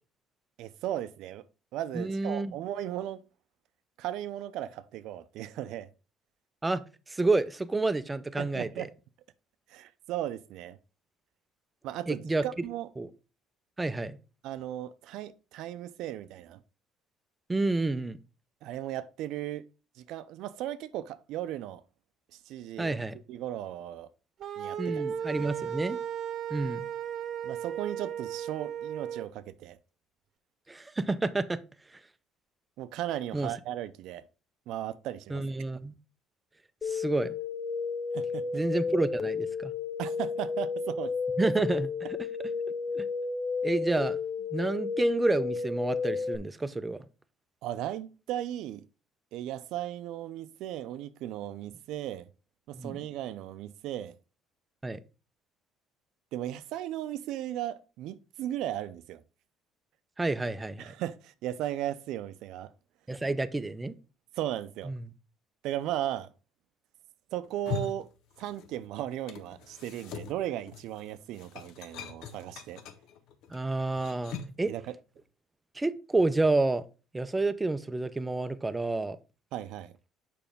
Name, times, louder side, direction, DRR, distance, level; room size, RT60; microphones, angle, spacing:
voice 1, 0.6-1.4 1.7-3.2 4.0-5.9 8.4-8.9 9.7-10.8 11.8-12.9 14.4-16.6 18.6-19.6 20.0-21.8 22.3-23.0 23.3-24.1 24.6-25.4 27.4-29.8 32.8-34.2 34.7-35.4 38.1-38.4 40.0-41.1 47.6-48.8 49.3-52.3 52.7-54.1 56.3-59.2 60.8-62.7 64.4-65.0 65.6-66.3 67.3-68.1 68.4-72.8 74.7-74.9 79.5-79.9, right 12 dB, 75° right, 0.6 m, -36 dB
voice 2, 1.9-2.5 6.6-8.9 12.1-12.7 13.0-13.1 13.8-14.2 17.5-18.2 22.8-23.1 24.8-26.0 26.5-26.9 30.7-31.6 33.3-33.5 35.3-35.9 36.9-37.4 38.5-39.7 41.4-41.9 42.9-43.1 43.6-44.2 44.5-47.0 52.8-53.0 54.8-55.0 60.2-60.9 63.1-63.9 64.8-65.1 73.5-74.7 75.7-76.8 77.1-79.2, right 2 dB, 15° right, 0.5 m, -29 dB
sound 1, 24.4-29.3, right 8 dB, 55° right, 0.9 m, -35 dB
sound 2, 36.8-46.4, left 5 dB, 30° left, 0.7 m, -32 dB
sound 3, 67.4-68.9 69.1-74.7, left 7 dB, 75° left, 0.9 m, -42 dB
7.0 x 5.0 x 3.5 m
cardioid pair, 120°, 0 cm